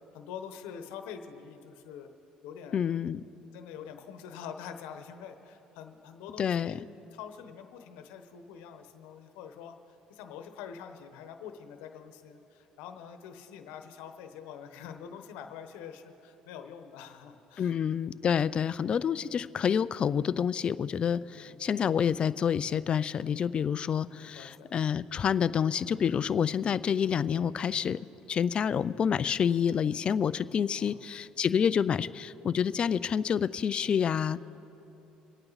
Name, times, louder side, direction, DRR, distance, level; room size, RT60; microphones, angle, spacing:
voice 1, 0.1-2.1 2.4-2.8 3.5-6.9 7.1-9.8 10.1-17.7 18.2-18.4 21.4-21.8 24.1-24.7 30.8-31.0, left 7 dB, 85° left, 7 dB, 1.0 m, -45 dB
voice 2, 2.7-3.2 6.4-6.8 17.6-34.4, left 8 dB, 40° left, 16 dB, 0.4 m, -28 dB
25.0 x 8.9 x 4.1 m, 2.9 s
cardioid pair, 110°, 3 cm